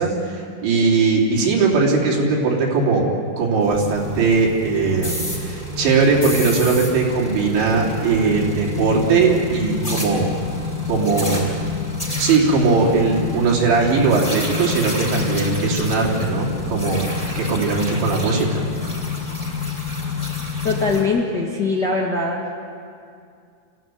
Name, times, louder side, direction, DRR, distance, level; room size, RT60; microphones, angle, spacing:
voice 1, 0.0-3.1 3.4-10.3 10.9-11.5 12.2-17.1 17.3-18.6, right 4 dB, 85° right, -4 dB, 5.5 m, -19 dB
sound 1, 3.6-21.0, left 4 dB, 10° left, 5.8 m, -27 dB
voice 2, 20.6-22.4, left 3 dB, 90° left, -2 dB, 0.9 m, -21 dB
26.5 x 16.0 x 9.3 m, 2.4 s
omnidirectional pair, 5.0 m